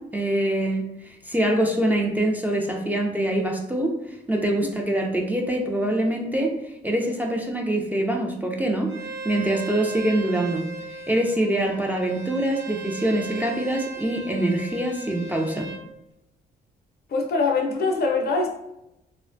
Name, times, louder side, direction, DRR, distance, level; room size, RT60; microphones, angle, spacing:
voice 1, 0.0-4.0 4.3-6.5 6.8-8.9 9.2-10.7 11.1-15.7, right 1 dB, 10° right, 0 dB, 0.3 m, -24 dB
Bowed string instrument, 8.9-15.8, right 2 dB, 80° right, 0.6 m, -37 dB
voice 2, 17.1-18.5, left 3 dB, 60° left, 2 dB, 0.5 m, -23 dB
2.4 x 2.1 x 2.5 m, 0.84 s
cardioid pair, 90°, 18 cm